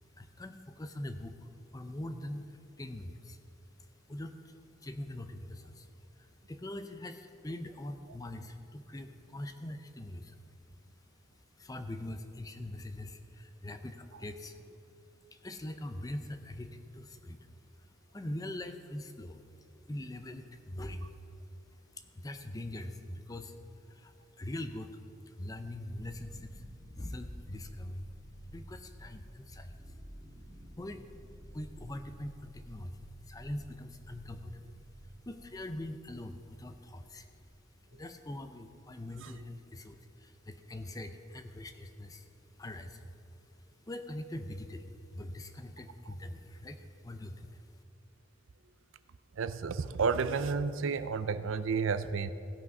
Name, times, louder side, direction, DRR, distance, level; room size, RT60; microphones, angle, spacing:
voice 1, 0.2-3.4 4.1-4.5 4.8-5.9 6.2-10.4 11.6-14.6 15.3-17.5 17.8-19.4 19.9-21.1 21.9-23.5 23.8-25.0 25.3-26.6 27.0-28.1 28.5-29.8 30.8-31.1 31.5-33.0 33.3-34.6 35.3-37.3 37.9-42.3 42.6-43.1 43.9-47.6, left 1 dB, 15° left, 8 dB, 0.5 m, -43 dB
sound 1, 25.9-39.8, equal, 5° right, 1.6 m, -53 dB
voice 2, 49.4-52.3, right 5 dB, 70° right, 13 dB, 0.4 m, -31 dB
16.5 x 5.9 x 5.4 m, 2.5 s
head